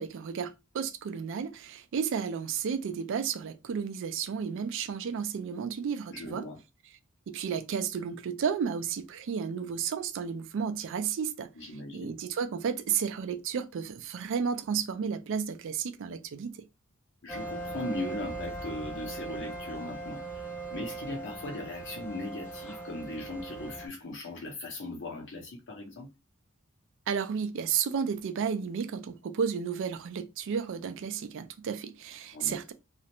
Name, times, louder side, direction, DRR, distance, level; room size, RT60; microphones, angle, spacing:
voice 1, 0.0-6.5 7.3-16.6 27.1-32.7, right 7 dB, 65° right, 0.4 m, -32 dB
voice 2, 6.1-6.6 11.6-12.2 17.2-26.1 32.3-32.6, left 2 dB, 60° left, 0.8 m, -39 dB
sound 1, 17.3-23.9, right 3 dB, 10° left, 0.6 m, -39 dB
2.4 x 2.1 x 2.9 m
head